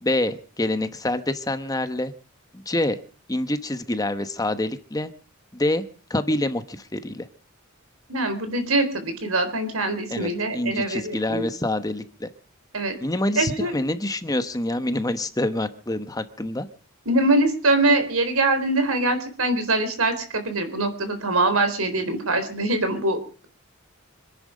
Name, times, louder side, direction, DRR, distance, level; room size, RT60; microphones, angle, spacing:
voice 1, 0.0-2.1 2.5-3.0 3.3-5.1 5.5-5.8 6.1-7.3 10.1-12.3 13.0-16.7, left 1 dB, 15° left, 10 dB, 1.0 m, -26 dB
voice 2, 8.1-11.4 12.7-13.0 13.4-13.7 17.1-23.2, right 2 dB, 90° right, 8 dB, 4.0 m, -23 dB
26.0 x 10.5 x 5.1 m, 0.40 s
head